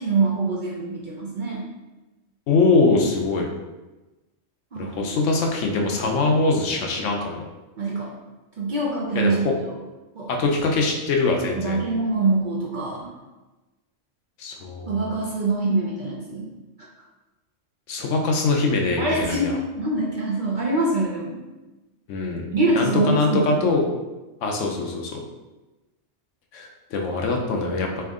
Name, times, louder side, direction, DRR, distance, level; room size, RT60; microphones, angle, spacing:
voice 1, 0.0-1.7 4.7-5.2 7.8-8.1 8.6-9.5 10.2-10.3 11.5-13.1 14.9-16.5 19.0-21.4 22.5-23.7, right 2 dB, 50° right, -4 dB, 0.6 m, -24 dB
voice 2, 2.5-3.5 4.8-7.4 9.1-9.5 10.3-11.8 14.4-15.1 17.9-19.6 22.1-22.4 22.7-23.9 24.4-25.2 26.5-28.0, left 3 dB, 70° left, 1 dB, 0.9 m, -23 dB
3.4 x 2.7 x 3.6 m, 1.1 s
omnidirectional pair, 1.3 m